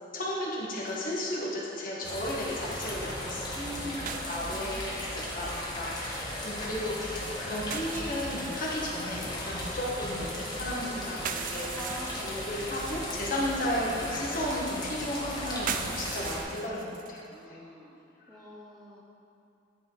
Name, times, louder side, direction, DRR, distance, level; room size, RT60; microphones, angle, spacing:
voice 1, 0.1-4.0 4.3-17.6, left 1 dB, 45° left, -4 dB, 1.4 m, -34 dB
sound 1, 0.9-1.0 4.1-5.2 7.7-8.7 11.1-13.2 15.7-17.3, right 8 dB, 45° right, 0.3 m, -39 dB
sound 2, 2.0-16.4, left 1 dB, 20° left, 1.3 m, -36 dB
voice 2, 3.5-4.1 4.4-4.7 11.7-12.5 17.3-18.0 18.3-19.0, equal, ahead, -5 dB, 0.6 m, -43 dB
10.0 x 4.9 x 3.9 m, 2.7 s
head